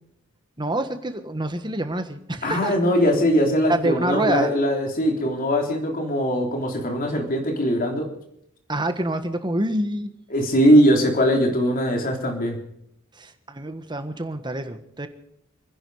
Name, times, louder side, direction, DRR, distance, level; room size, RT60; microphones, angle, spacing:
voice 1, 0.6-2.7 3.7-4.5 8.7-10.1 13.1-15.1, right 1 dB, 20° right, 8 dB, 1.5 m, -26 dB
voice 2, 2.4-8.1 10.3-12.6, equal, 45° left, 2 dB, 3.5 m, -21 dB
28.0 x 10.5 x 4.9 m, 0.73 s
head